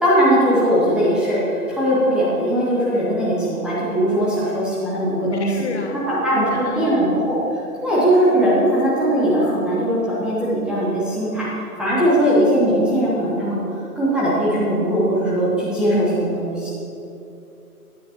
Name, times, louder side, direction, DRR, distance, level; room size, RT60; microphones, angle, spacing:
voice 1, 0.0-5.7 6.1-7.4 7.8-11.5 11.8-13.6 14.0-16.7, equal, ahead, -9 dB, 1.0 m, -19 dB
voice 2, 5.4-6.0 6.3-7.0, left 3 dB, 50° left, 4 dB, 1.2 m, -29 dB
14.0 x 9.7 x 2.9 m, 2.7 s
figure-of-eight pair, 125°, 45 cm